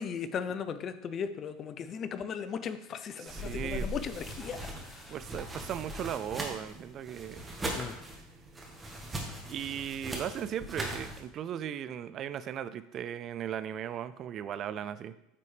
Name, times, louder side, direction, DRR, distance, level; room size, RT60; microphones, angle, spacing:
voice 1, 0.0-5.2 7.7-7.9, left 7 dB, 40° left, 11 dB, 0.5 m, -37 dB
voice 2, 3.2-3.9 5.1-7.5 9.5-15.1, right 9 dB, 45° right, 14 dB, 0.3 m, -37 dB
sound 1, 3.3-11.2, right 1 dB, 15° right, 1.4 m, -40 dB
8.3 x 4.2 x 3.3 m, 0.84 s
hypercardioid pair, 90°, 0 cm